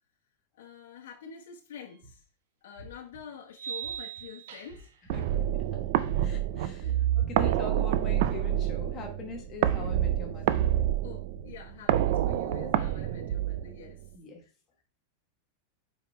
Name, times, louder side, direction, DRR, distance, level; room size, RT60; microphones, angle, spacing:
voice 1, 0.6-2.2 2.6-5.2 6.8-7.0 11.0-14.0 14.4-14.5, left 8 dB, 75° left, 0 dB, 1.0 m, -47 dB
sound 1, 1.9-2.0 3.5-5.0, right 9 dB, 65° right, 1.0 m, -39 dB
sound 2, 2.0-2.2 2.8-3.2 3.8-4.2 4.6-5.1 5.6-6.0 6.4-6.9 7.3-7.9 8.3-8.7 9.3-9.7 10.3-10.7 11.3-11.7, right 1 dB, 25° right, 2.0 m, -50 dB
voice 2, 5.1-5.8 6.1-10.6 14.1-14.4, left 3 dB, 20° left, 2 dB, 1.3 m, -42 dB
sound 3, 5.1-14.1, right 12 dB, 45° right, 0.4 m, -28 dB
4.9 x 4.9 x 4.4 m, 0.36 s
supercardioid pair, 180°, 0 cm